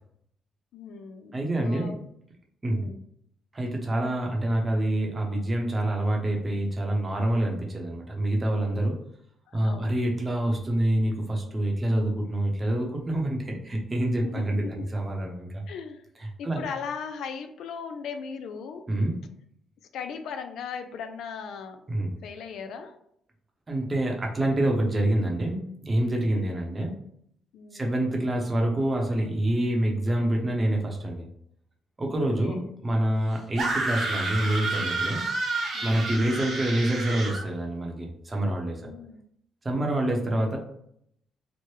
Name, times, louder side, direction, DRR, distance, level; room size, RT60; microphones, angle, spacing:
voice 1, 0.7-2.0 2.7-3.0 9.5-10.0 14.2-14.9 15.7-16.1 16.4-18.8 19.9-21.8 22.2-23.0 26.3-26.4 27.5-27.9 32.2-32.6 35.7-36.1 38.8-39.2, left 6 dB, 75° left, 7 dB, 0.3 m, -38 dB
voice 2, 1.3-1.9 2.6-2.9 3.5-8.9 9.5-15.6 16.4-16.6 18.9-19.2 21.9-22.1 23.7-27.0 27.7-31.2 32.0-35.2 35.8-38.9 39.6-40.6, right 1 dB, 25° right, 0 dB, 0.7 m, -26 dB
sound 1, 33.6-37.4, right 2 dB, 55° right, 0.9 m, -30 dB
3.1 x 2.1 x 3.1 m, 0.71 s
cardioid pair, 90°, 0 cm